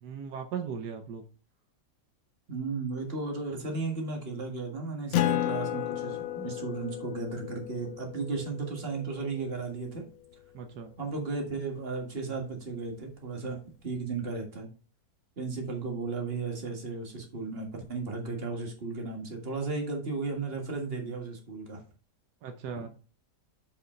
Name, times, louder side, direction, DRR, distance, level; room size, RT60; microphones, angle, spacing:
voice 1, 0.0-1.2 10.5-10.9 22.4-22.9, right 6 dB, 80° right, 5 dB, 1.4 m, -38 dB
voice 2, 2.5-10.0 11.0-14.7 15.4-21.8, right 4 dB, 35° right, 1 dB, 2.0 m, -35 dB
Acoustic guitar, 5.1-10.1, left 13 dB, 70° left, 1.0 m, -33 dB
7.1 x 5.1 x 4.4 m, 0.37 s
omnidirectional pair, 1.7 m